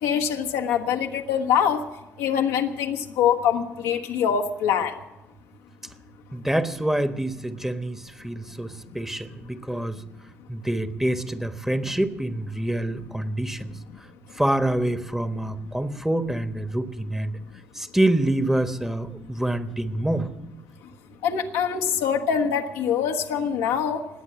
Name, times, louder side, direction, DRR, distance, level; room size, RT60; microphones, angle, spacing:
voice 1, 0.0-1.8 2.2-4.9 21.2-24.1, left 8 dB, 85° left, 3 dB, 1.2 m, -24 dB
voice 2, 6.3-10.0 10.5-13.7 14.4-17.3 17.7-20.3, right 1 dB, 5° right, 10 dB, 1.2 m, -26 dB
20.0 x 8.3 x 7.5 m, 0.99 s
hypercardioid pair, 55°, 6 cm